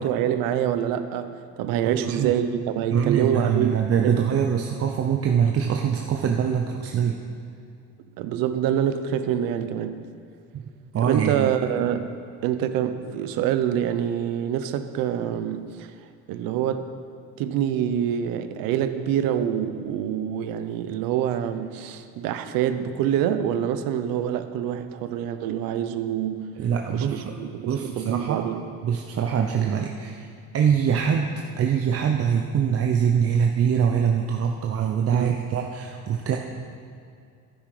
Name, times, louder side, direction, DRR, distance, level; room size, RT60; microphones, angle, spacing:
voice 1, 0.0-1.3 1.6-4.2 8.2-10.0 11.0-12.1 12.4-15.9 16.3-16.9 17.4-26.5 26.9-28.6 35.1-35.4, right 9 dB, 80° right, 10 dB, 0.8 m, -26 dB
voice 2, 1.8-2.4 2.9-7.2 10.5-10.6 10.9-11.5 26.6-27.3 27.7-28.4 28.8-30.3 30.5-36.4, right 7 dB, 45° right, 2 dB, 0.8 m, -23 dB
11.5 x 9.7 x 5.0 m, 2.4 s
cardioid pair, 110°, 33 cm